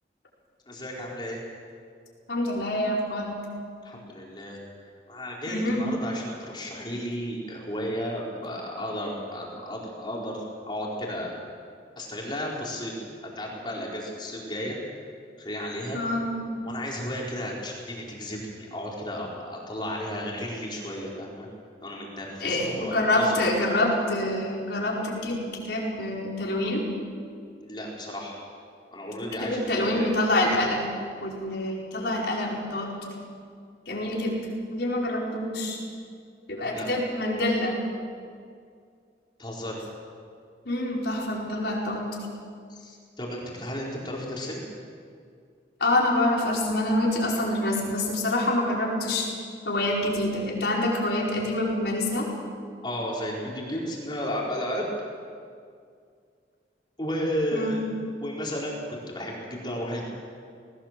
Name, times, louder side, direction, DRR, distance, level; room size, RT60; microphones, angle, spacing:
voice 1, 0.7-1.4 3.8-4.6 5.1-11.3 12.0-12.9 13.2-14.8 15.4-16.0 16.6-21.5 21.8-23.3 27.6-28.4 28.9-30.1 36.7-36.9 39.4-39.8 42.7-44.6 52.8-54.9 57.0-57.8 58.2-60.0, equal, 25° left, -3 dB, 4.5 m, -33 dB
voice 2, 2.3-3.4 5.5-5.8 15.9-16.4 22.4-26.9 29.4-30.8 31.2-33.1 33.9-35.8 36.5-37.8 40.6-42.1 45.8-49.3 49.6-52.3 57.5-57.8, left 1 dB, 70° left, -3 dB, 4.9 m, -26 dB
20.0 x 18.0 x 7.6 m, 2.2 s
head